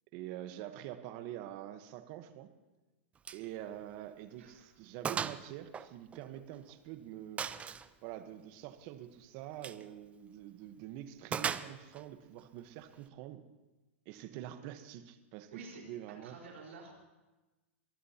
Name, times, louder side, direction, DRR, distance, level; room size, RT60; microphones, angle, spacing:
voice 1, 0.1-2.5 3.3-7.5 8.0-13.4 14.0-16.4, right 12 dB, 50° right, 10 dB, 1.2 m, -46 dB
Gunshot gunfire, 3.2-3.5 3.8-3.9 4.4-4.5 5.0-5.4 5.7-6.7 7.4-7.9 9.5-9.8 11.3-12.0, right 7 dB, 20° right, 0.5 m, -37 dB
voice 2, 4.4-4.7 15.5-15.8 16.2-16.9, right 4 dB, 80° right, 0 dB, 4.5 m, -50 dB
23.0 x 15.5 x 2.9 m, 1.1 s
hypercardioid pair, 125°, 7 cm